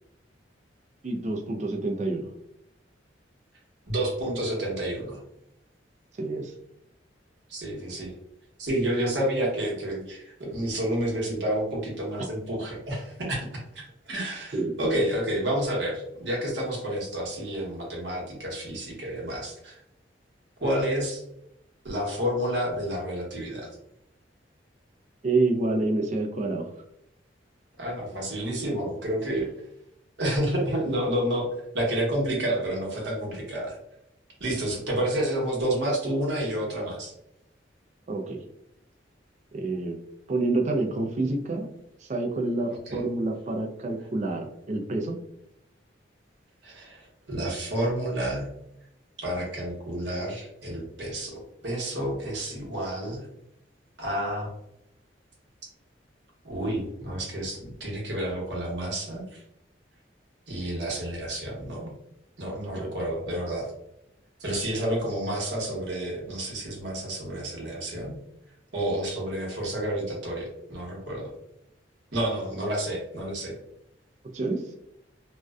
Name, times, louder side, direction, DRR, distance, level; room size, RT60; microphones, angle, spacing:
voice 1, 1.0-2.3 6.2-6.5 12.2-12.3 14.5-14.7 25.2-26.7 38.1-38.4 39.5-40.0 40.3-41.7 42.0-45.2 62.7-62.9 74.3-74.7, right 2 dB, 40° right, 2 dB, 0.4 m, -28 dB
voice 2, 3.9-5.2 7.5-8.1 8.6-19.8 20.6-21.2 21.8-23.7 27.8-29.5 30.2-31.5 31.7-33.8 34.4-37.1 42.7-43.0 46.6-48.5 49.2-53.3 54.0-54.5 56.4-59.4 60.5-61.9 62.4-63.7 64.4-68.1 68.7-71.3 72.1-73.5, right 1 dB, 70° right, -2 dB, 0.9 m, -30 dB
2.5 x 2.1 x 2.3 m, 0.78 s
head